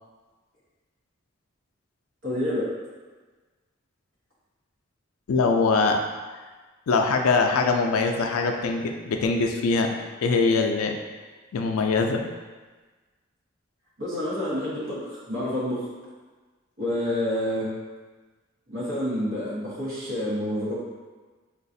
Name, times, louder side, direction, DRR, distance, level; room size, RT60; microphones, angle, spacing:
voice 1, 2.2-2.7 14.0-15.9 16.8-17.7 18.7-20.8, left 1 dB, 70° right, -9 dB, 1.2 m, -28 dB
voice 2, 5.3-6.0 6.3-6.4 6.9-9.9 10.2-10.9 11.5-12.2, left 4 dB, 90° left, 3 dB, 0.4 m, -22 dB
3.8 x 2.4 x 2.6 m, 1.3 s
head